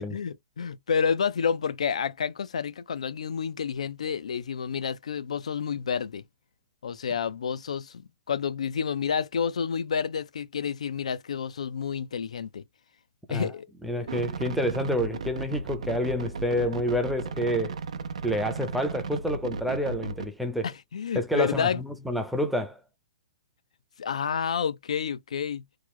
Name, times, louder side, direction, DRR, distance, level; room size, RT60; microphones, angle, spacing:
voice 1, 0.0-6.2 6.8-8.0 8.3-12.6 13.3-13.7 14.0-14.1 20.6-21.8 24.0-25.6, left 7 dB, 85° left, 0.4 m, -29 dB
voice 2, 13.8-17.8 18.2-20.7 21.2-22.8, equal, ahead, 0.6 m, -28 dB
sound 1, 14.1-20.3, right 4 dB, 85° right, 0.6 m, -35 dB
3.1 x 2.1 x 3.5 m
hypercardioid pair, 150°, 3 cm